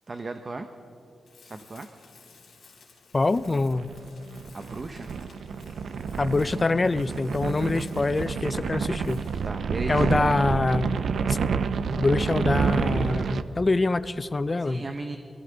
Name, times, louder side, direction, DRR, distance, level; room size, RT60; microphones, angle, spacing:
voice 1, 0.1-0.7 1.4-1.9 4.5-5.1 9.4-10.4 14.6-15.2, right 3 dB, 35° right, 7 dB, 0.7 m, -35 dB
Tools, 1.2-9.6, left 5 dB, 80° left, 3.5 m, -56 dB
voice 2, 3.1-3.9 6.2-9.2 9.9-11.0 11.3-11.4 12.0-14.8, left 3 dB, 30° left, 15 dB, 0.4 m, -25 dB
sound 1, 3.4-13.4, right 5 dB, 75° right, 0.5 m, -29 dB
22.0 x 14.5 x 3.9 m, 2.6 s
wide cardioid pair, 95°, 0 cm